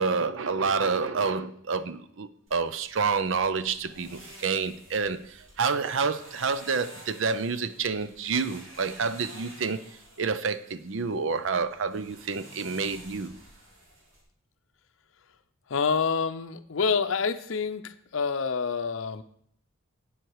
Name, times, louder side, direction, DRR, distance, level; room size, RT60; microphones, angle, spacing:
voice 1, 0.0-9.8 10.2-13.4, right 5 dB, 70° right, 13 dB, 0.6 m, -28 dB
sound 1, 2.5-14.2, right 1 dB, 90° right, 3.1 m, -51 dB
voice 2, 15.7-19.2, left 5 dB, 75° left, 12 dB, 0.6 m, -27 dB
9.0 x 7.8 x 4.7 m, 0.66 s
head